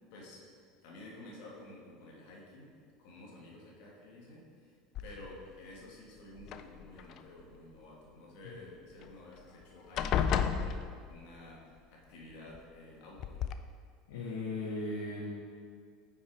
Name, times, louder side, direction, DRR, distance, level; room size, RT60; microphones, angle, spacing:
voice 1, 0.1-0.4 0.8-10.8 11.1-13.4, left 2 dB, 70° left, -3 dB, 1.6 m, -52 dB
sound 1, 5.0-5.5 6.4-7.2 9.0-9.1 9.4-9.6 10.0-11.4 12.5-12.6 13.2-13.5, left 8 dB, 45° left, 0.3 m, -33 dB
voice 2, 14.1-15.3, left 2 dB, 90° left, -4 dB, 1.0 m, -37 dB
5.4 x 4.8 x 4.9 m, 2.1 s
supercardioid pair, 130°, 0 cm